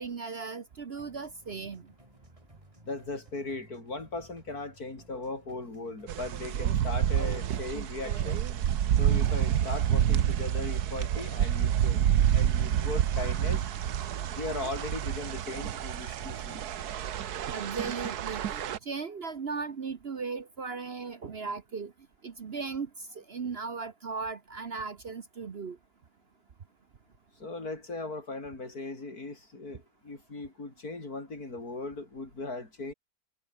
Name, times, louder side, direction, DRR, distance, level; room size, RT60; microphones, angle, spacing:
voice 1, 0.0-1.9 17.5-21.9 22.2-22.9 23.1-25.8, right 5 dB, 45° right, 1.2 m, -37 dB
sound 1, 1.0-17.0, right 1 dB, 20° right, 6.6 m, -57 dB
voice 2, 2.8-8.4 8.9-12.0 12.3-13.7 14.3-16.6 27.4-32.9, left 3 dB, 70° left, 5.2 m, -38 dB
sound 2, 6.1-18.8, right 10 dB, 80° right, 1.5 m, -28 dB
omnidirectional pair, 1.7 m